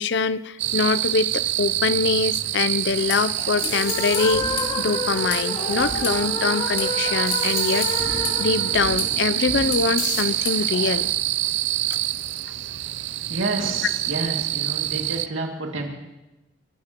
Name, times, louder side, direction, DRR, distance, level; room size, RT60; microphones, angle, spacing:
voice 1, 0.0-7.9 8.4-11.1 11.9-12.0, left 4 dB, 60° left, 15 dB, 0.5 m, -24 dB
sound 1, 0.6-15.3, right 15 dB, 65° right, 0.5 m, -26 dB
sound 2, 2.9-11.0, left 4 dB, 75° left, 4.2 m, -33 dB
sound 3, 3.6-9.8, left 2 dB, 30° left, 2.0 m, -30 dB
voice 2, 13.3-15.9, right 2 dB, 90° right, 1 dB, 2.3 m, -29 dB
27.0 x 14.0 x 3.0 m, 1.0 s
head